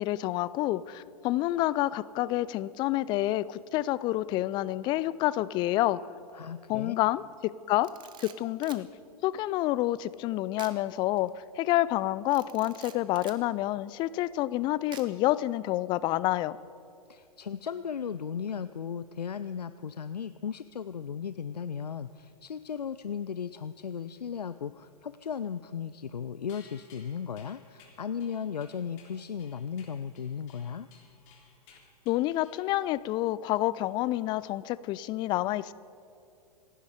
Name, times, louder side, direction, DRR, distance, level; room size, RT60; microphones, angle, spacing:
voice 1, 0.0-6.0 6.7-7.9 8.2-8.9 9.2-16.6 32.1-35.7, left 16 dB, 25° left, 18 dB, 0.3 m, -28 dB
voice 2, 6.3-6.9 17.1-30.9, left 7 dB, 85° left, 13 dB, 0.4 m, -36 dB
Camera, 7.7-8.9 10.6-10.8 11.2-11.3 12.3-13.4 14.9-15.3, right 9 dB, 25° right, 0.9 m, -48 dB
sound 1, 26.5-33.1, left 5 dB, 40° left, 3.8 m, -59 dB
27.0 x 10.0 x 5.0 m, 2.6 s
figure-of-eight pair, 105°, 20 cm